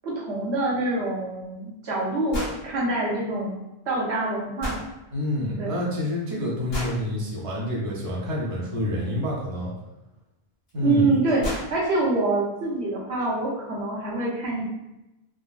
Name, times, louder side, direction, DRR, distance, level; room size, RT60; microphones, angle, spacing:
voice 1, 0.0-4.8 5.6-5.8 10.8-14.7, right 2 dB, 85° right, -5 dB, 1.1 m, -26 dB
sound 1, 2.3-2.6 4.6-4.9 6.7-7.0 9.3-9.4 10.7-10.8 11.1-11.2 11.4-11.7, equal, 70° left, 1.3 m, -30 dB
voice 2, 5.1-9.7 10.7-11.1, left 1 dB, 35° right, -4 dB, 0.7 m, -28 dB
3.7 x 2.0 x 2.3 m, 0.95 s
omnidirectional pair, 1.1 m